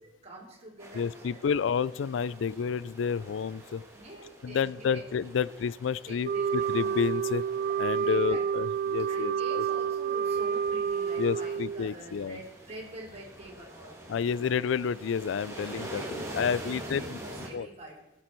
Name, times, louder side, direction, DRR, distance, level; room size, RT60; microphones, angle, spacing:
voice 1, 0.2-1.6 3.9-5.0 6.0-6.8 8.0-8.4 9.1-13.9 15.5-17.9, right 1 dB, 35° right, -3 dB, 3.3 m, -46 dB
sound 1, 0.8-17.5, right 1 dB, 15° right, 2.1 m, -46 dB
voice 2, 0.9-3.8 4.4-7.4 7.8-9.6 11.2-12.4 14.1-17.2 17.5-17.7, left 6 dB, 75° left, 19 dB, 0.4 m, -30 dB
Wind instrument woodwind instrument, 6.2-11.9, right 7 dB, 50° right, 0.3 m, -29 dB
17.5 x 7.7 x 4.5 m, 0.95 s
head